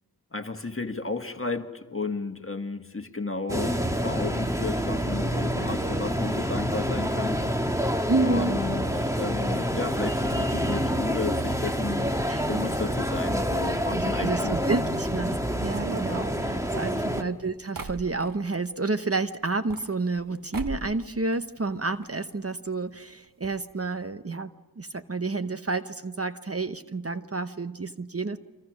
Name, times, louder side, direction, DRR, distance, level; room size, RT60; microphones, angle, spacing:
voice 1, 0.3-7.4 8.2-12.1 12.5-14.5 16.9-17.3, left 3 dB, 35° left, 1.6 m, -33 dB
sound 1, 3.5-17.2, equal, 10° right, 1.5 m, -27 dB
voice 2, 8.1-8.6 12.3-12.7 13.9-28.4, right 3 dB, 35° right, 0.9 m, -30 dB
sound 2, 15.7-18.6 19.5-20.3 20.5-21.0 21.3-22.1 22.3-22.4 22.6-22.7 23.4-23.5 23.8-24.0, right 4 dB, 60° right, 1.3 m, -39 dB
29.5 x 25.0 x 6.3 m
wide cardioid pair, 55°, 38 cm